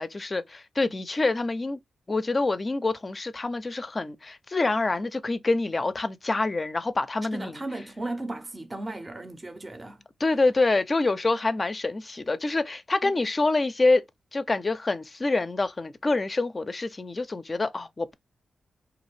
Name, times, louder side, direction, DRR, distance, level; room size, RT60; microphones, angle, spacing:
voice 1, 0.0-1.8 2.1-7.6 10.2-14.0 14.3-18.1, left 3 dB, 35° left, 0.4 m, -26 dB
voice 2, 7.3-10.0 13.0-13.1, right 2 dB, 25° right, 0.5 m, -36 dB
3.1 x 2.4 x 3.1 m
cardioid pair, 70°, 0 cm